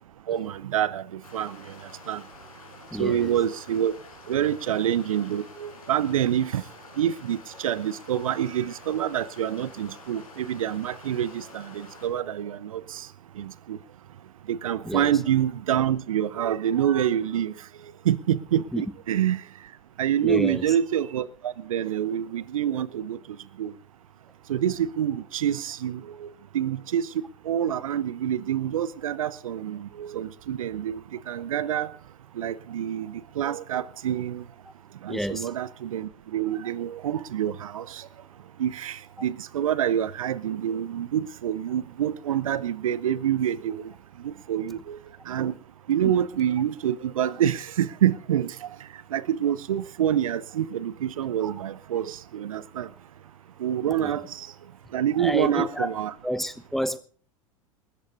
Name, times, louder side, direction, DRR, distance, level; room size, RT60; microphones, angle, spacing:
voice 1, 0.3-1.6 2.1-2.2 3.0-3.9 4.3-6.6 7.0-13.1 13.4-13.8 14.5-17.5 18.1-19.4 20.0-23.2 23.6-23.7 24.5-26.3 26.5-27.1 27.5-31.0 31.3-31.9 32.4-34.4 35.0-38.1 38.6-43.9 44.2-45.0 45.3-45.5 45.9-48.7 49.1-52.9 53.6-54.5 54.9-56.1, right 10 dB, 70° right, 0.7 m, -27 dB
sound 1, 1.2-12.1, left 4 dB, 80° left, 6.3 m, -48 dB
voice 2, 2.9-3.3 14.8-15.2 18.7-18.8 20.2-20.7 35.1-35.5 46.0-46.1 54.0-54.1 55.2-55.9 56.2-57.0, equal, ahead, 1.1 m, -29 dB
28.0 x 13.5 x 2.6 m
figure-of-eight pair, 85°, 18 cm